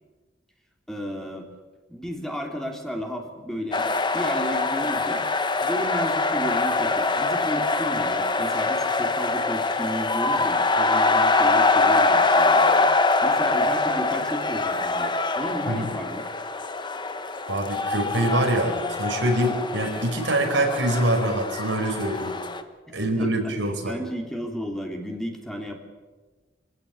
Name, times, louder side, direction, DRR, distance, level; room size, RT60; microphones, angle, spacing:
voice 1, 0.9-1.5 1.9-5.3 5.6-12.9 13.2-16.3 22.9-23.5 23.9-25.8, equal, 5° left, 2 dB, 2.9 m, -33 dB
sound 1, 3.7-22.6, left 3 dB, 25° left, 1.2 m, -24 dB
voice 2, 17.5-22.4 22.9-24.0, right 1 dB, 85° right, 2 dB, 4.9 m, -24 dB
25.0 x 16.0 x 8.7 m, 1.3 s
head